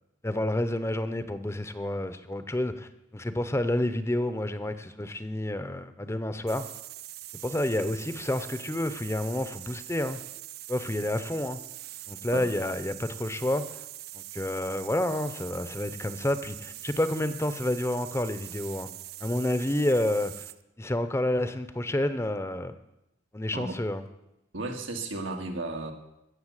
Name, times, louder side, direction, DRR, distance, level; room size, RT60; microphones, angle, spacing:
voice 1, 0.2-6.7 7.4-10.2 10.7-11.6 12.1-13.6 14.1-18.9 19.2-20.5 20.8-22.7 23.3-24.0, left 1 dB, 15° left, 11 dB, 0.7 m, -29 dB
sound 1, 6.5-20.6, right 15 dB, 55° right, 0.5 m, -43 dB
voice 2, 24.5-25.9, right 2 dB, 90° right, 3 dB, 1.9 m, -34 dB
16.0 x 6.8 x 8.1 m, 0.90 s
head